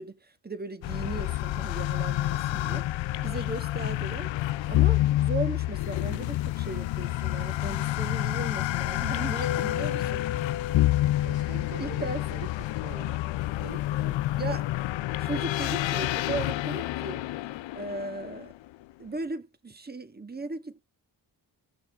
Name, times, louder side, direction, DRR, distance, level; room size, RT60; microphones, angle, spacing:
voice 1, 0.0-4.3 4.7-10.2 11.8-12.2 14.4-14.8 15.2-17.2 17.7-18.5 19.0-20.8, right 3 dB, 20° right, 1.5 m, -37 dB
sound 1, 0.8-18.8, left 16 dB, 85° left, 0.5 m, -28 dB
voice 2, 8.8-10.6 11.2-14.2, right 6 dB, 85° right, 2.4 m, -46 dB
Mallet percussion, 9.4-12.9, left 10 dB, 55° left, 0.8 m, -36 dB
16.5 x 6.1 x 3.4 m
cardioid pair, 75°, 44 cm